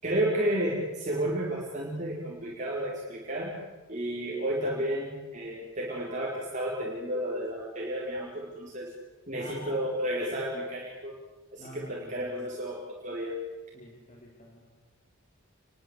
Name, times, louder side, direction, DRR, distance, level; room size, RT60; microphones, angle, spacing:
voice 1, 0.0-3.5 3.9-8.9 9.3-11.1 11.5-13.3, right 1 dB, 35° right, -4 dB, 5.0 m, -32 dB
voice 2, 9.3-9.9 11.6-12.5 13.7-14.6, left 1 dB, 35° left, -1 dB, 4.2 m, -47 dB
29.0 x 22.5 x 8.4 m, 1.2 s
head